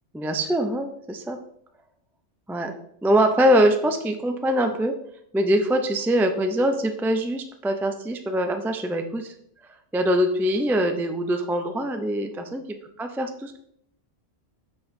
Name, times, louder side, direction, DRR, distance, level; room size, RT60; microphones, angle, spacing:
voice 1, 0.1-1.4 2.5-2.7 3.0-4.9 5.3-9.3 9.9-12.6 13.0-13.6, equal, 5° right, 6 dB, 0.3 m, -23 dB
6.2 x 5.8 x 4.9 m, 0.72 s
omnidirectional pair, 1.2 m